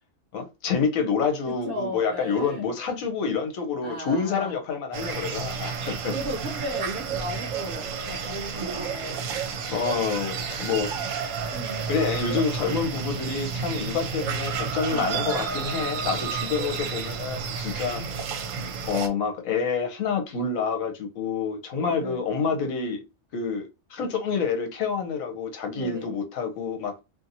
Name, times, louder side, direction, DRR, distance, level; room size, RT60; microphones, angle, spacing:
voice 1, 0.3-6.1 9.7-10.9 11.9-18.0 18.9-23.0 23.3-27.0, left 5 dB, 75° left, 1.1 m, -28 dB
voice 2, 1.5-2.7 3.8-4.6 6.1-9.2 11.5-11.9 12.6-12.9 14.9-15.6 21.9-22.2 25.7-26.1, equal, 50° right, 0.7 m, -36 dB
sound 1, 4.9-19.1, right 5 dB, 70° right, 1.0 m, -31 dB
2.7 x 2.6 x 2.5 m
omnidirectional pair, 1.5 m